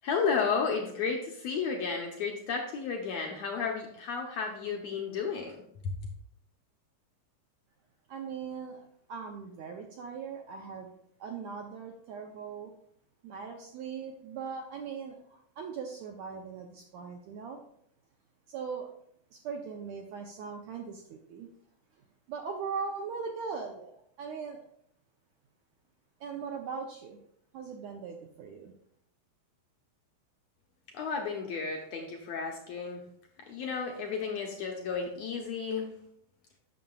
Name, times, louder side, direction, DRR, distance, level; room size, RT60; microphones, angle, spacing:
voice 1, 0.0-5.6 30.9-33.0 33.5-35.9, left 5 dB, 80° left, 1 dB, 1.5 m, -32 dB
voice 2, 8.1-8.8 9.1-10.9 11.2-12.7 13.2-17.6 18.5-18.9 19.3-21.5 22.3-24.6 26.2-27.2 27.5-28.7, right 5 dB, 85° right, 2 dB, 1.6 m, -40 dB
9.1 x 6.6 x 2.3 m, 0.70 s
omnidirectional pair, 3.8 m